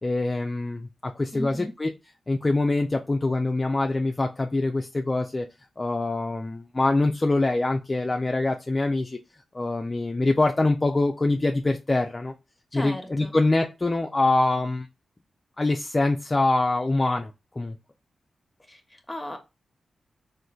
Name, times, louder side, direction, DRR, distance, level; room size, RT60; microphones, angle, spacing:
voice 1, 0.0-1.9 2.3-5.5 5.8-9.2 9.5-12.3 12.7-14.9 15.6-17.8, left 2 dB, 30° left, 0.3 m, -24 dB
voice 2, 1.3-1.7 12.7-13.4 18.7-19.4, left 1 dB, 15° left, 0.8 m, -36 dB
3.7 x 2.5 x 2.3 m
cardioid pair, 50°, 0 cm